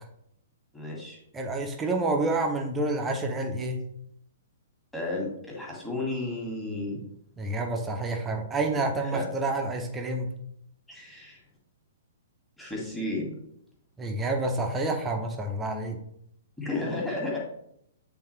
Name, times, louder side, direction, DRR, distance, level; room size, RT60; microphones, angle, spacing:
voice 1, 0.7-1.2 4.9-7.0 9.1-9.3 10.9-11.4 12.6-13.3 16.6-17.4, left 2 dB, 5° left, -4 dB, 1.9 m, -32 dB
voice 2, 1.3-3.8 7.4-10.3 14.0-16.0, right 2 dB, 15° right, 3 dB, 0.8 m, -28 dB
8.3 x 3.6 x 3.3 m, 0.73 s
figure-of-eight pair, 115°, 0 cm